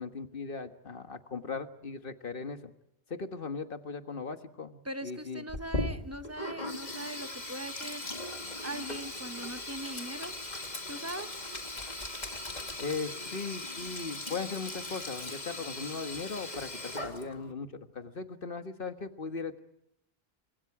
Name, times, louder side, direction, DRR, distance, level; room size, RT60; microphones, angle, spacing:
voice 1, 0.0-2.7 3.1-5.4 12.8-19.6, left 4 dB, 60° left, 8 dB, 1.7 m, -38 dB
voice 2, 4.8-8.3 8.6-10.3 10.9-11.3, right 1 dB, 15° right, 9 dB, 1.1 m, -41 dB
Sink (filling or washing), 5.5-17.5, left 2 dB, 40° left, 2.2 m, -39 dB
29.5 x 25.5 x 4.9 m, 0.82 s
omnidirectional pair, 1.1 m